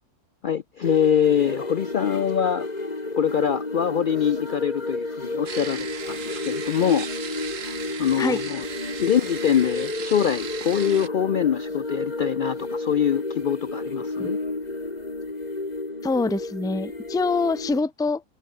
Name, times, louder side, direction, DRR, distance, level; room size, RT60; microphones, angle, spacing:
voice 1, 0.4-2.7 3.2-7.1 7.6-8.6 9.0-14.4, left 8 dB, 85° left, 0.4 m, -24 dB
sound 1, 0.8-17.8, left 2 dB, 25° left, 2.6 m, -31 dB
sound 2, 5.5-11.1, right 6 dB, 55° right, 1.8 m, -37 dB
voice 2, 16.0-18.2, left 3 dB, 5° left, 0.3 m, -25 dB
omnidirectional pair, 1.6 m